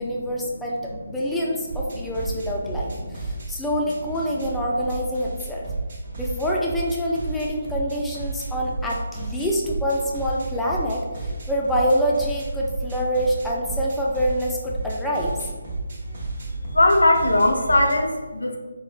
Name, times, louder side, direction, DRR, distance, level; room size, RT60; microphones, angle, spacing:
voice 1, 0.0-5.7 6.2-15.4, equal, 5° left, -4 dB, 0.4 m, -26 dB
sound 1, 1.7-18.0, right 2 dB, 50° right, 0.9 m, -32 dB
voice 2, 16.7-18.6, left 1 dB, 85° left, 3 dB, 0.5 m, -19 dB
4.2 x 2.1 x 2.4 m, 1.3 s
figure-of-eight pair, 155°, 0 cm